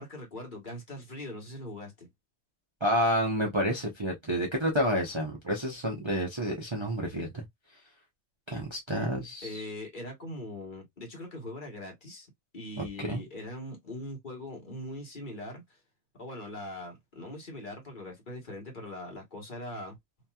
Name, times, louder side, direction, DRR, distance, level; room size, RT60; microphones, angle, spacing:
voice 1, 0.0-2.1 9.4-12.3 12.5-15.8 16.1-20.0, left 1 dB, 40° left, 1.3 m, -41 dB
voice 2, 2.8-7.4 8.5-9.6 12.8-13.2, equal, 30° right, 0.6 m, -29 dB
2.9 x 2.8 x 2.2 m
omnidirectional pair, 1.4 m